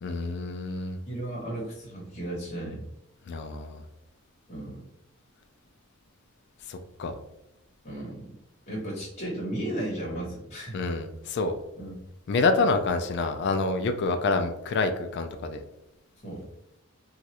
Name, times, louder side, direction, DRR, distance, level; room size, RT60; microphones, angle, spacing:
voice 1, 0.0-1.0 3.3-3.8 6.7-7.1 10.7-11.6 12.3-15.6, left 3 dB, 50° left, 7 dB, 0.3 m, -27 dB
voice 2, 1.1-2.8 4.5-4.8 7.8-8.3 8.7-10.8 11.8-11.9 16.2-16.4, right 1 dB, 30° left, -4 dB, 1.0 m, -34 dB
3.0 x 2.4 x 2.8 m, 0.88 s
head